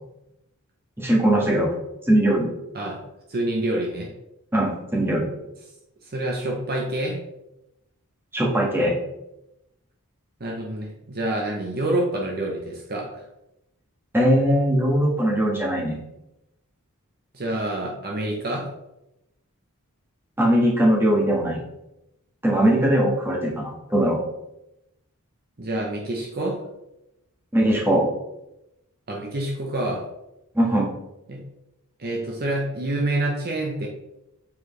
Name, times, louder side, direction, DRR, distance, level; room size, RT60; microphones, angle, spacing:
voice 1, 1.0-1.7 2.1-2.5 4.5-5.3 8.3-8.9 14.1-16.0 20.4-21.6 22.4-24.2 27.5-28.1 30.5-30.9, right 1 dB, 10° right, -3 dB, 1.4 m, -20 dB
voice 2, 3.3-4.1 6.0-7.2 10.4-13.2 17.3-18.7 25.6-26.6 29.1-30.0 31.3-31.4 32.0-33.9, right 1 dB, 45° right, 0 dB, 0.9 m, -27 dB
7.2 x 4.6 x 3.2 m, 0.90 s
head